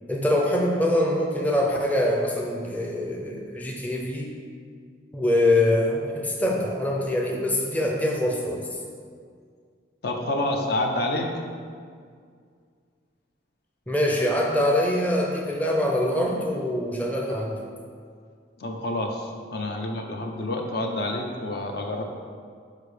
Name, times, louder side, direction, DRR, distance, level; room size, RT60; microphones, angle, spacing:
voice 1, 0.1-4.3 5.1-8.7 13.9-17.6, left 1 dB, 10° left, -1 dB, 0.6 m, -24 dB
voice 2, 10.0-11.3 18.6-22.0, left 1 dB, 55° left, 2 dB, 0.7 m, -28 dB
6.8 x 4.6 x 5.0 m, 2.1 s
head